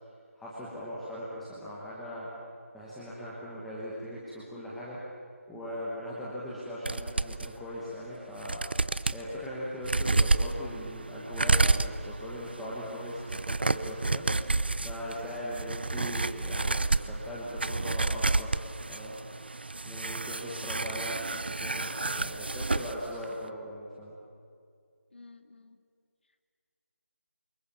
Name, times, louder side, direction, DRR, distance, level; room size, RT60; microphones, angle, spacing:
voice 1, 0.3-2.3 2.7-5.0 5.5-8.6 9.1-14.3 14.8-18.5 18.9-19.2 19.8-24.1, equal, ahead, -9 dB, 1.1 m, -39 dB
sound 1, 6.9-7.5 8.0-8.1 8.4-9.2 9.8-22.9 23.2-23.3, right 2 dB, 45° right, 0.7 m, -30 dB
voice 2, 20.4-20.7 25.1-25.8, left 3 dB, 45° left, 8 dB, 2.1 m, -52 dB
28.5 x 25.5 x 7.3 m, 2.3 s
figure-of-eight pair, 180°, 8 cm